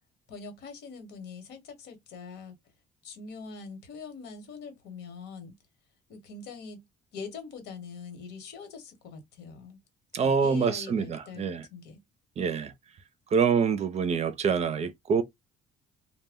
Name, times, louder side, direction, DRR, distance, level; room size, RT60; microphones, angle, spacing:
voice 1, 0.3-2.6 3.0-5.5 6.1-6.8 7.1-9.8 10.1-12.0, left 5 dB, 85° left, 1.2 m, -43 dB
voice 2, 10.1-11.7 12.4-12.7 13.3-15.2, right 6 dB, 40° right, 0.5 m, -26 dB
2.2 x 2.1 x 3.5 m
cardioid pair, 110°, 17 cm